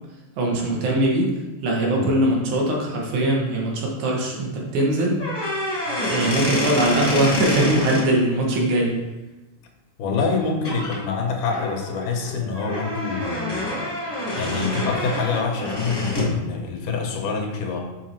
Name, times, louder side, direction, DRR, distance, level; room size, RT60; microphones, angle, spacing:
voice 1, 0.4-1.3 1.6-5.2 6.1-9.0, right 1 dB, 70° right, -1 dB, 2.5 m, -21 dB
sound 1, 5.1-8.0 10.2-10.3 10.6-11.0 11.5-16.4, left 1 dB, 25° left, 0.5 m, -27 dB
voice 2, 10.0-13.8 14.3-17.8, left 4 dB, 85° left, 2 dB, 2.5 m, -26 dB
6.9 x 4.7 x 4.5 m, 1.1 s
omnidirectional pair, 3.6 m